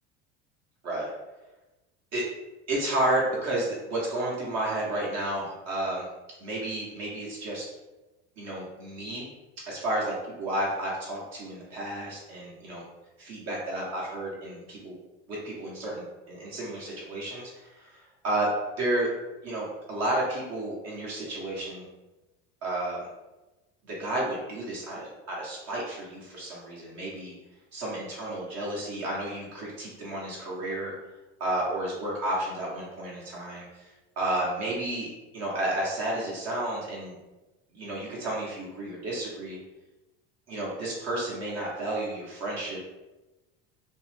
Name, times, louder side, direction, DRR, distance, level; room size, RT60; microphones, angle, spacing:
voice 1, 2.7-6.1 6.4-7.7 8.4-9.3 9.7-12.8 13.2-15.0 15.3-18.5 18.8-19.1 19.4-21.9 22.6-23.1 23.8-27.3 27.7-30.9 31.4-35.1 35.3-37.1 37.7-39.6 40.5-42.8, right 1 dB, 55° right, -4 dB, 0.9 m, -31 dB
2.6 x 2.0 x 3.1 m, 1.1 s
supercardioid pair, 90°, 31 cm